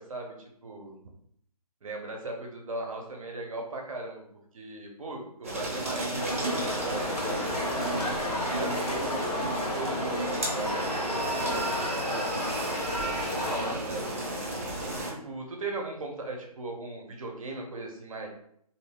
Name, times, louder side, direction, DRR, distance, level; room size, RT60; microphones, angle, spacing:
voice 1, 0.6-1.0 1.8-4.2 4.5-7.6 8.5-12.5 13.0-14.4 14.9-18.3, right 2 dB, 55° right, 1 dB, 0.8 m, -38 dB
sound 1, 5.4-15.1, right 1 dB, 20° right, 0.4 m, -33 dB
sound 2, 6.2-13.7, left 1 dB, 75° left, 1.0 m, -32 dB
sound 3, 10.3-14.5, right 4 dB, 90° right, 0.5 m, -43 dB
2.7 x 2.0 x 3.5 m, 0.70 s
hypercardioid pair, 160°, 20 cm